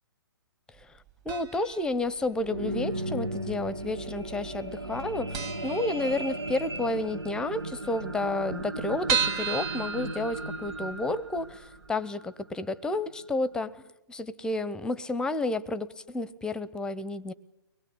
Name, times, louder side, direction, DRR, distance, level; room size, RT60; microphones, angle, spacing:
voice 1, 1.2-13.8 14.1-17.3, left 2 dB, 5° left, 18 dB, 0.8 m, -31 dB
sound 1, 1.3-1.8 2.1-2.2 3.1-3.8 4.1-4.2 4.5-4.6 5.0-5.1 5.3-6.7 7.0-7.1 7.4-7.5 7.7-7.8 8.3-10.9 11.4-11.5 11.8-11.9, right 7 dB, 25° right, 1.6 m, -32 dB
sound 2, 2.1-12.6 13.2-13.3, right 1 dB, 80° right, 1.8 m, -36 dB
24.0 x 21.0 x 8.6 m, 0.88 s
figure-of-eight pair, 125°, 13 cm